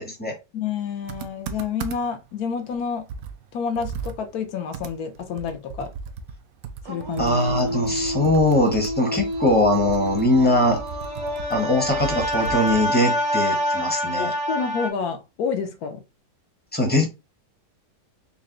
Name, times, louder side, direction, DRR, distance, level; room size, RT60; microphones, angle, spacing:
voice 1, 0.0-0.4 7.2-10.8 11.5-14.3 16.7-17.1, left 1 dB, 10° left, 0.7 m, -21 dB
voice 2, 0.5-3.0 3.5-5.9 6.9-7.4 7.6-7.7 14.2-16.0, left 6 dB, 70° left, 1.2 m, -29 dB
Computer keyboard, 1.1-2.3 2.7-2.8 3.1-13.0, right 6 dB, 70° right, 0.9 m, -36 dB
sound 1, 6.9-14.9, equal, 85° right, 1.7 m, -27 dB
3.9 x 2.2 x 3.7 m
omnidirectional pair, 1.8 m